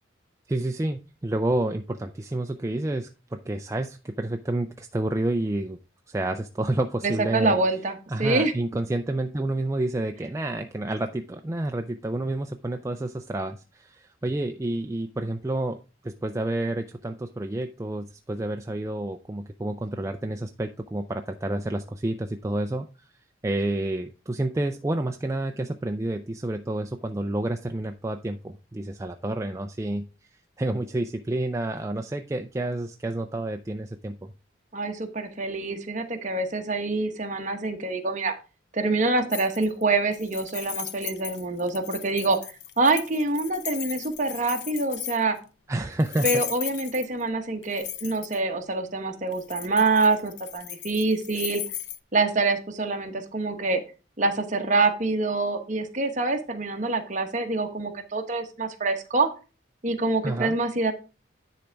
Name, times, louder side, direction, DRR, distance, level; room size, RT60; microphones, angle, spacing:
voice 1, 0.5-5.8 6.1-7.6 8.1-15.8 16.0-23.1 23.4-30.1 30.6-34.3 45.7-46.4 60.2-60.6, right 1 dB, 15° right, 6 dB, 0.3 m, -29 dB
voice 2, 7.0-8.5 34.7-38.3 38.7-42.4 42.8-45.4 46.2-51.6 52.1-53.8 54.2-59.3 59.8-60.9, right 3 dB, 40° right, 5 dB, 1.0 m, -25 dB
sound 1, 39.3-39.8 40.1-45.4 46.0-47.2 47.6-48.4 49.3-52.0, left 12 dB, 60° left, 0.6 m, -36 dB
10.0 x 3.4 x 5.1 m, 0.33 s
head